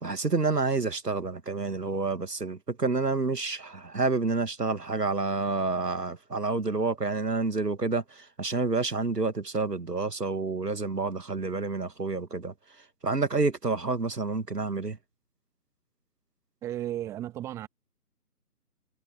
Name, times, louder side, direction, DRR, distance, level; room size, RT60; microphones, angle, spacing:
voice 1, 0.0-12.5 13.0-15.0, right 3 dB, 85° right, 1.9 m, -29 dB
voice 2, 16.6-17.7, right 12 dB, 5° right, 1.4 m, -34 dB
figure-of-eight pair, 150°, 47 cm